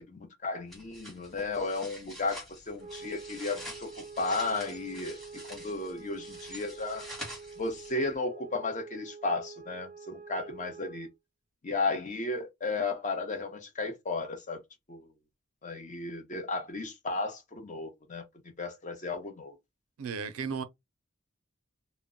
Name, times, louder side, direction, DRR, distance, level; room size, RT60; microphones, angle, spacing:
voice 1, 0.0-3.9 4.2-5.2 5.5-7.1 7.6-11.1 11.6-14.6 14.9-15.1 15.6-18.2 18.6-19.6, left 3 dB, 35° left, 0.7 m, -34 dB
sound 1, 0.7-8.1, equal, ahead, 1.0 m, -46 dB
sound 2, 2.8-11.2, right 4 dB, 30° right, 0.4 m, -47 dB
voice 2, 20.0-20.6, right 5 dB, 85° right, 0.5 m, -34 dB
2.1 x 2.0 x 3.5 m
head